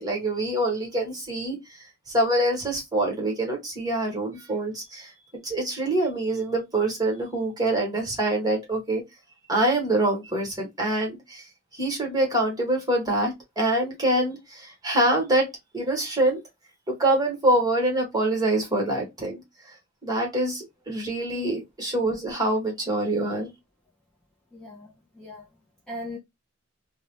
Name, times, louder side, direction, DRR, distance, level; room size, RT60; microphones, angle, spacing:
voice 1, 0.0-1.6 2.1-5.1 5.4-9.0 9.5-11.4 11.7-15.5 15.7-16.4 17.0-19.4 20.0-23.5, right 1 dB, 20° right, 1.1 m, -25 dB
voice 2, 21.3-21.6 24.5-25.5 25.9-26.2, left 1 dB, 5° left, 0.5 m, -39 dB
2.5 x 2.0 x 3.1 m
head